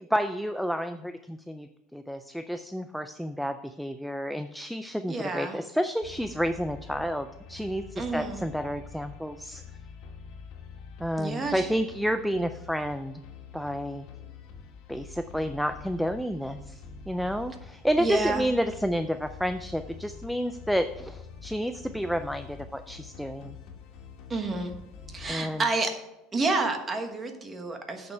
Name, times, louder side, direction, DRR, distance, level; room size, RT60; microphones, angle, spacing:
voice 1, 0.0-9.6 11.0-13.2 13.5-14.1 14.9-23.6 25.3-25.7, equal, ahead, 9 dB, 0.3 m, -30 dB
voice 2, 5.1-5.6 8.0-8.4 11.2-11.7 18.0-18.5 24.3-24.7 25.1-25.9 26.3-28.1, right 3 dB, 15° right, 5 dB, 1.2 m, -29 dB
sound 1, 6.0-25.3, left 5 dB, 55° left, 2.0 m, -46 dB
8.6 x 6.4 x 5.5 m, 0.95 s
cardioid pair, 160°, 0 cm